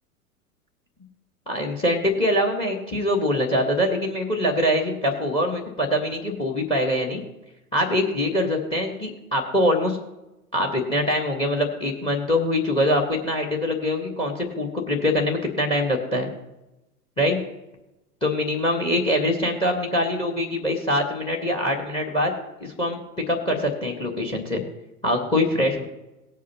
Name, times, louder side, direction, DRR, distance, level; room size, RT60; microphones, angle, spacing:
voice 1, 1.5-7.2 7.7-10.0 10.5-16.3 17.2-17.4 18.2-22.3 22.6-23.0 23.3-24.6 25.0-25.8, left 1 dB, 10° left, 5 dB, 1.7 m, -23 dB
18.5 x 8.3 x 3.0 m, 0.95 s
figure-of-eight pair, 100°, 46 cm